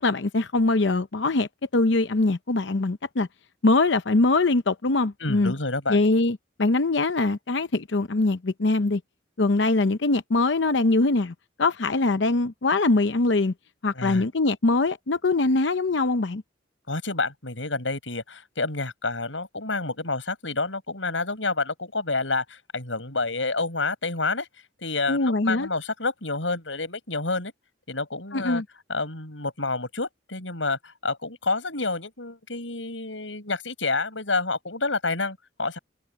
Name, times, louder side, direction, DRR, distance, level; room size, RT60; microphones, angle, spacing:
voice 1, 0.0-3.3 3.6-5.5 5.9-9.0 9.4-13.5 13.8-16.4 25.1-25.7 28.3-28.6, left 2 dB, 70° left, 0.8 m, -23 dB
voice 2, 5.2-6.0 13.9-14.2 16.9-24.5 24.8-27.5 27.9-28.6 28.9-35.8, left 3 dB, 85° left, 7.3 m, -29 dB
head